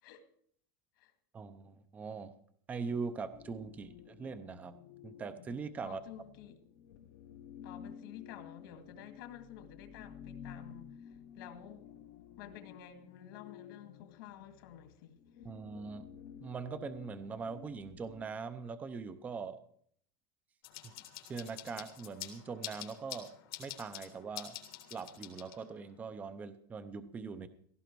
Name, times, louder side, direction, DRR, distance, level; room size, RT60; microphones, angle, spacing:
voice 1, 1.3-2.3 2.7-4.8 5.0-6.0 15.4-16.1 16.4-19.6 20.8-20.9 21.3-23.3 23.6-24.5 24.9-27.5, right 5 dB, 10° right, 0.6 m, -41 dB
sound 1, 3.3-18.3, left 9 dB, 45° left, 0.9 m, -53 dB
voice 2, 5.8-6.6 7.6-11.9 12.4-15.2, left 10 dB, 65° left, 2.1 m, -51 dB
sound 2, 20.6-25.9, left 12 dB, 90° left, 3.4 m, -47 dB
17.0 x 15.5 x 4.6 m
supercardioid pair, 180°, 12 cm